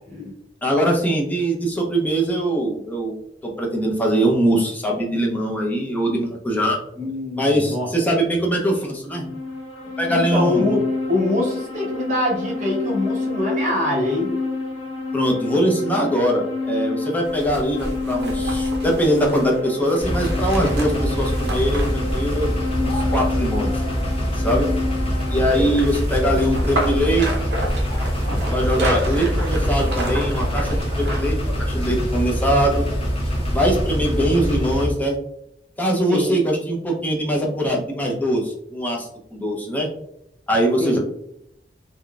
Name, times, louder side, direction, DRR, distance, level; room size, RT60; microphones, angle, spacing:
voice 1, 0.6-3.2 3.4-6.8 7.4-9.3 10.0-10.8 15.1-21.9 22.1-22.5 22.8-23.7 24.3-24.7 25.3-27.3 28.5-32.8 33.5-35.2 35.8-39.9 40.5-41.0, equal, 10° left, -1 dB, 0.6 m, -22 dB
voice 2, 7.0-7.9 10.1-14.3 25.5-25.8 28.7-29.0 36.1-36.4 40.8-41.0, left 1 dB, 45° right, -3 dB, 1.1 m, -24 dB
sound 1, 9.0-25.4, left 3 dB, 75° left, 0.9 m, -29 dB
sound 2, 17.3-23.4 25.1-31.4 31.8-31.9, right 1 dB, 65° right, 0.7 m, -31 dB
sound 3, 20.0-34.9, equal, 35° left, 0.9 m, -24 dB
3.8 x 2.2 x 2.3 m, 0.76 s
head